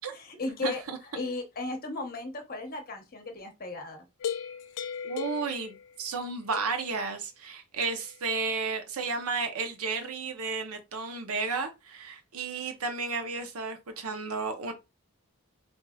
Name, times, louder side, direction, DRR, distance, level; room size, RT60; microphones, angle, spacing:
voice 1, 0.1-0.8 1.1-4.1, left 3 dB, 40° left, 0.9 m, -35 dB
voice 2, 0.6-1.2 5.0-14.7, right 4 dB, 75° right, 0.8 m, -33 dB
sound 1, 4.2-6.2 6.5-7.0 7.8-8.2, left 7 dB, 90° left, 0.3 m, -37 dB
4.8 x 2.6 x 2.3 m
head